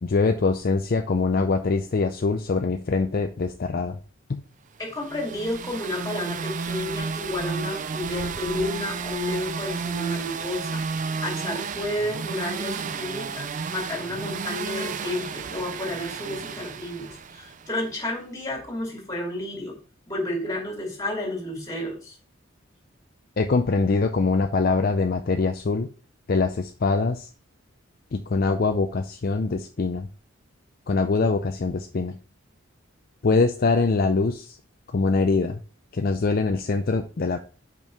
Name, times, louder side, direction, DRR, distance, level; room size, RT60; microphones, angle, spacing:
voice 1, 0.0-4.0 4.3-4.4 23.4-25.9 26.3-27.3 28.1-30.1 30.9-32.2 33.2-34.6 34.9-35.6 35.9-37.4, left 4 dB, 45° left, 6 dB, 0.5 m, -23 dB
voice 2, 4.8-10.8 11.2-19.8 20.1-22.2, left 1 dB, 20° left, -2 dB, 2.6 m, -31 dB
sound 1, 4.9-17.8, right 5 dB, 40° right, 0.4 m, -32 dB
5.3 x 5.3 x 4.7 m, 0.38 s
head